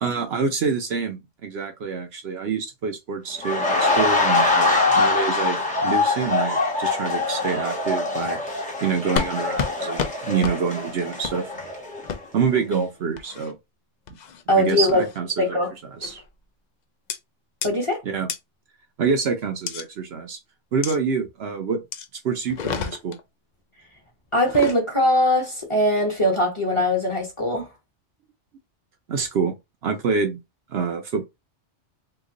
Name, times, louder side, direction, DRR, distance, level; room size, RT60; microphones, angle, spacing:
voice 1, 0.0-8.4 8.8-11.5 12.3-13.6 14.5-15.6 15.9-16.2 18.0-18.3 19.0-20.4 20.7-21.8 22.2-23.2 29.1-29.5 29.8-30.4 30.7-31.2, right 5 dB, 65° right, 0.8 m, -26 dB
sound 1, 3.4-12.2 12.5-12.8, left 3 dB, 5° left, 0.9 m, -23 dB
sound 2, 9.2-9.3 9.6-9.7 10.0-10.1 10.4-10.6 11.2-11.4 12.1-12.2 13.2-13.5 14.1-14.4 14.9-15.2 16.0-16.3 17.1-17.2 17.6-17.7 18.3-18.4 19.7-19.8 20.8-21.0 21.9-22.1 22.5-23.2 24.4-24.8, left 6 dB, 60° left, 0.4 m, -29 dB
voice 2, 14.5-15.0 15.4-15.7 17.6-18.0 24.3-27.7, equal, 25° left, 1.2 m, -21 dB
2.9 x 2.4 x 3.7 m
omnidirectional pair, 1.2 m